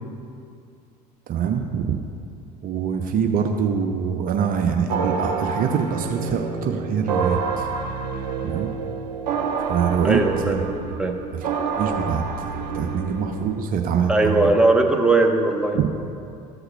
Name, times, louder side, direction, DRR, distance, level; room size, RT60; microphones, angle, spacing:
voice 1, 1.3-2.0 2.6-7.7 8.4-8.7 9.7-10.6 11.3-11.5 11.8-14.5 15.7-15.9, right 7 dB, 40° right, 4 dB, 0.6 m, -24 dB
sound 1, 4.9-13.6, right 5 dB, 75° right, 0.8 m, -28 dB
voice 2, 10.0-10.6 11.0-11.2 14.1-15.9, right 2 dB, 5° right, 2 dB, 0.9 m, -19 dB
13.5 x 7.9 x 2.2 m, 2.5 s
figure-of-eight pair, 65°, 21 cm